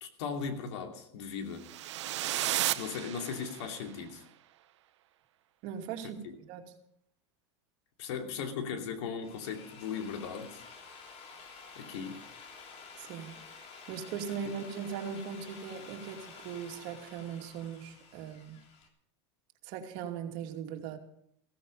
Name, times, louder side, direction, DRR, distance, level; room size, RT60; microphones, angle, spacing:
voice 1, 0.0-1.7 2.7-4.2 6.2-6.3 8.0-10.6 11.8-12.2 14.4-14.5, left 6 dB, 75° left, 4 dB, 2.7 m, -38 dB
sound 1, 1.6-3.8, right 13 dB, 85° right, 0.8 m, -33 dB
voice 2, 5.6-6.2 6.5-6.7 12.9-13.3 13.9-18.6 19.6-21.0, right 7 dB, 60° right, 3 dB, 2.7 m, -39 dB
Drill, 9.1-18.9, left 5 dB, 45° left, 3.2 m, -51 dB
15.5 x 14.5 x 5.5 m, 0.70 s
supercardioid pair, 120°, 15 cm